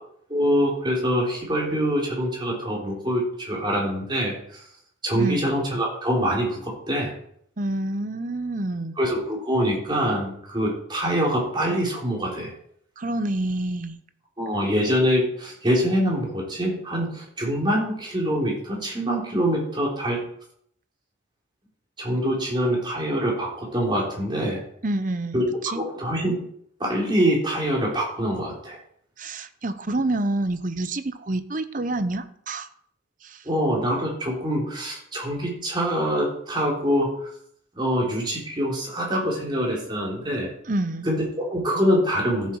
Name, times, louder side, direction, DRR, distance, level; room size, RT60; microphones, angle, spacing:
voice 1, 0.3-4.6 5.0-7.1 9.0-12.5 14.4-20.2 22.0-24.6 25.3-26.4 26.8-28.8 33.5-37.3 37.8-40.5 41.1-42.6, equal, 25° right, -3 dB, 3.8 m, -24 dB
voice 2, 7.6-9.0 13.0-14.0 24.8-25.8 29.2-32.7 33.2-33.4 40.7-41.1, right 2 dB, 45° right, 11 dB, 0.8 m, -28 dB
14.5 x 7.3 x 4.7 m, 0.67 s
head